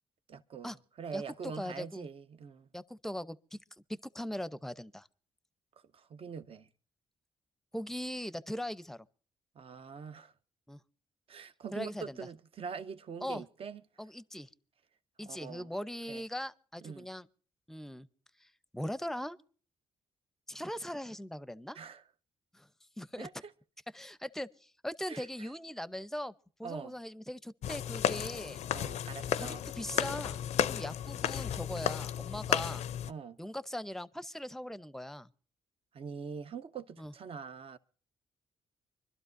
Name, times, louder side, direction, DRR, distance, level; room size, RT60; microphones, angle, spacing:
voice 1, 0.3-0.7 1.0-2.7 5.9-6.7 9.5-10.3 11.3-13.8 15.2-15.7 16.1-16.2 16.8-17.1 21.7-22.0 23.2-23.5 25.1-25.5 26.6-26.9 28.7-29.6 33.1-33.4 35.9-37.8, right 6 dB, 55° right, 0.9 m, -44 dB
voice 2, 1.1-2.1 2.7-3.6 3.9-5.1 7.7-9.1 10.7-10.8 11.7-12.2 13.2-13.4 14.0-14.5 15.2-17.3 17.7-18.1 18.4-18.5 18.7-19.4 20.5-21.8 22.5-22.7 23.0-23.3 23.9-26.3 26.6-28.6 29.4-32.9 33.4-35.3 37.0-37.1, equal, 5° left, 0.7 m, -40 dB
sound 1, 27.6-33.1, left 10 dB, 70° left, 0.5 m, -33 dB
25.0 x 12.0 x 2.6 m
supercardioid pair, 65°, 12 cm